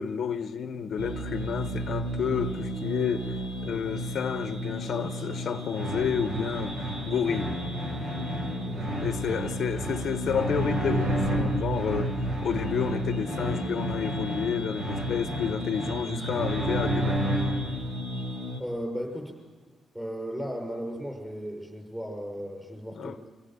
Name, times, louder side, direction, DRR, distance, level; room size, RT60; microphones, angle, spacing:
voice 1, 0.0-3.4 3.6-7.5 9.0-17.6 22.9-23.2, left 7 dB, 60° left, 0.9 m, -30 dB
sound 1, 1.0-18.6, equal, 65° right, 4.8 m, -34 dB
sound 2, 5.7-17.8, right 1 dB, 85° right, 8.0 m, -32 dB
voice 2, 8.7-9.0 18.6-19.4 19.9-23.3, equal, 5° right, 6.8 m, -36 dB
26.5 x 18.0 x 8.0 m
cardioid pair, 135°, 0 cm